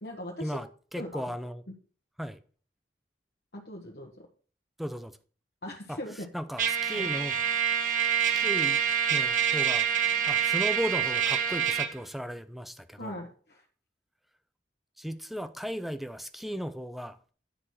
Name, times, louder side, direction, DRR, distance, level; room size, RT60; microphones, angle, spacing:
voice 1, 0.0-0.6 1.0-1.2 3.5-4.3 5.6-6.3 6.9-7.1 13.0-13.6, left 1 dB, 70° left, 1.3 m, -40 dB
voice 2, 0.9-1.6 2.2-2.4 4.8-5.2 5.9-6.0 6.3-7.4 8.4-8.8 9.1-9.9 10.3-13.2 15.0-17.2, equal, ahead, 0.5 m, -35 dB
Trumpet, 6.6-11.9, right 9 dB, 45° right, 1.1 m, -26 dB
10.0 x 4.3 x 6.4 m
head